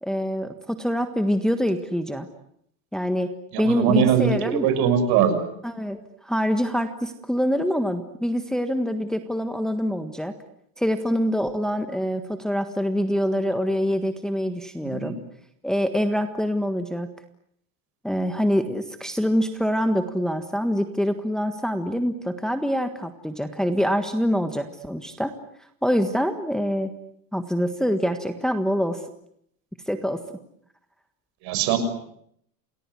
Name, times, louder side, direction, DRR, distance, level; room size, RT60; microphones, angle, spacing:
voice 1, 0.0-2.3 2.9-3.3 3.6-4.7 5.6-10.3 10.8-15.1 15.6-17.1 18.0-25.3 25.8-26.9 27.3-29.0 29.9-30.2, equal, ahead, 7 dB, 1.5 m, -25 dB
voice 2, 3.5-5.4 14.8-15.2 31.4-31.8, right 8 dB, 60° right, 10 dB, 6.6 m, -21 dB
29.0 x 19.5 x 9.8 m, 0.72 s
supercardioid pair, 140°, 43 cm